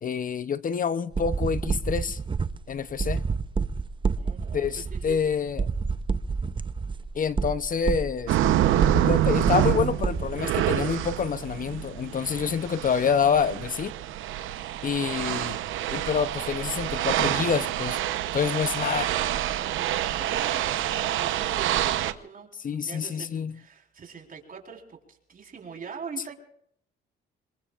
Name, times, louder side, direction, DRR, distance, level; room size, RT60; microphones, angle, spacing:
voice 1, 0.0-2.2 2.7-3.2 4.5-5.7 7.1-8.4 9.0-13.9 14.8-15.6 15.9-18.0 18.3-19.1 22.6-23.6, left 6 dB, 45° left, 0.7 m, -27 dB
sound 1, 1.1-10.3, right 4 dB, 25° right, 0.7 m, -29 dB
voice 2, 4.2-5.2 18.9-22.5 22.8-26.3, right 6 dB, 45° right, 4.2 m, -42 dB
sound 2, 8.3-22.1, right 12 dB, 85° right, 0.9 m, -27 dB
26.0 x 22.0 x 2.5 m
cardioid pair, 90°, 20 cm